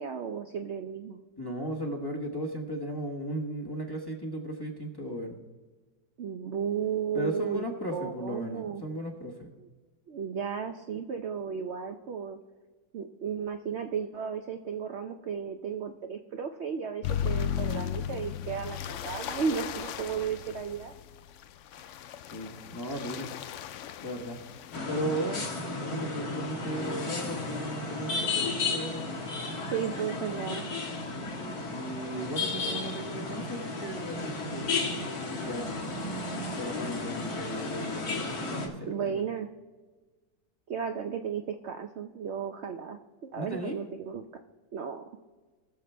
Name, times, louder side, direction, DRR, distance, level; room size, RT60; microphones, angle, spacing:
voice 1, 0.0-1.2 6.2-7.7 7.9-8.8 9.6-9.7 10.1-12.4 12.9-20.9 29.7-30.6 38.9-39.5 40.7-44.2 44.7-45.0, right 7 dB, 60° right, 5 dB, 0.7 m, -34 dB
voice 2, 1.4-5.4 7.1-9.5 22.3-23.3 24.0-24.4 24.8-25.5 25.8-29.0 31.0-34.9 35.4-36.0 36.5-39.2 43.4-43.8, right 1 dB, 15° left, 1 dB, 1.2 m, -36 dB
sound 1, 17.0-24.8, left 9 dB, 90° left, 0.6 m, -36 dB
sound 2, 24.7-38.7, left 3 dB, 60° left, 2.1 m, -34 dB
20.0 x 6.8 x 3.4 m, 1.3 s
omnidirectional pair, 1.8 m